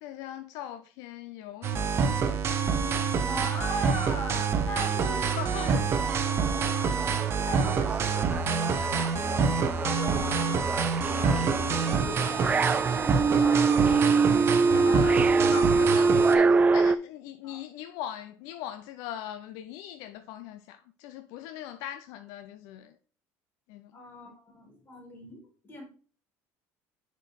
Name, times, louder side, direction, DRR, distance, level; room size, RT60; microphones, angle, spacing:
voice 1, 0.0-2.2 5.2-5.7 14.7-23.0 23.7-23.9, left 11 dB, 75° left, 0.5 m, -40 dB
sound 1, 1.6-16.3, right 5 dB, 40° right, 0.9 m, -27 dB
voice 2, 3.3-5.9 7.4-10.7 11.0-11.5 12.0-15.1 15.4-15.6 17.4-17.6 23.9-25.8, equal, 30° left, 3.2 m, -39 dB
sound 2, 5.4-17.0, right 4 dB, 20° right, 0.3 m, -25 dB
6.3 x 4.5 x 4.6 m
cardioid pair, 120°, 6 cm